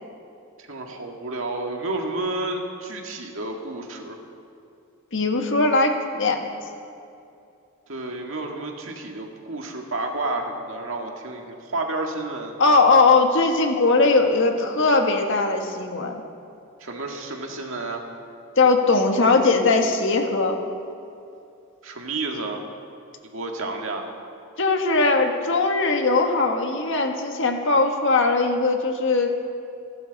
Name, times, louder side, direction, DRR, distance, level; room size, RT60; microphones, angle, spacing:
voice 1, 0.6-4.2 7.9-12.5 16.8-18.0 21.8-22.6 23.3-24.1, right 2 dB, 65° right, 1 dB, 2.0 m, -30 dB
voice 2, 5.1-6.4 12.6-16.2 18.6-20.6 24.6-29.3, left 3 dB, 60° left, 4 dB, 1.6 m, -20 dB
29.0 x 12.0 x 4.1 m, 2.6 s
head